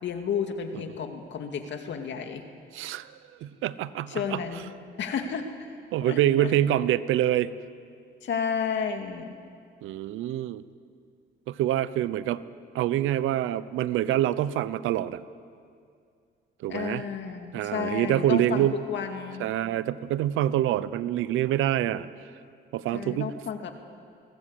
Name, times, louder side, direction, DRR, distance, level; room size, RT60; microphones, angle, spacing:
voice 1, 0.0-2.4 4.1-4.7 5.0-5.7 6.0-6.5 8.2-9.4 16.7-19.5 22.9-23.7, left 7 dB, 65° left, 5 dB, 2.4 m, -32 dB
voice 2, 2.7-3.1 3.4-4.4 5.9-7.5 9.8-10.6 11.5-12.4 12.7-15.2 16.6-17.0 17.5-18.7 19.4-22.1 22.7-23.3, right 12 dB, 90° right, 16 dB, 0.8 m, -26 dB
22.0 x 18.5 x 8.3 m, 2.3 s
cardioid pair, 90°, 20 cm